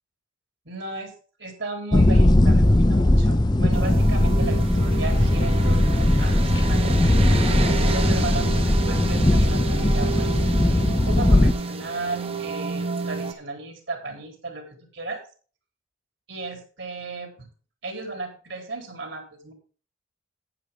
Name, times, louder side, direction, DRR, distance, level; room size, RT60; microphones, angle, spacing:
voice 1, 0.7-1.1 1.4-10.3 10.6-15.2 16.3-17.5 17.8-19.5, right 2 dB, 70° right, 4 dB, 3.8 m, -35 dB
sound 1, 1.9-11.5, left 1 dB, 20° left, 0.7 m, -19 dB
sound 2, 3.7-13.3, right 4 dB, 30° right, 1.1 m, -31 dB
11.5 x 9.6 x 3.7 m, 0.39 s
head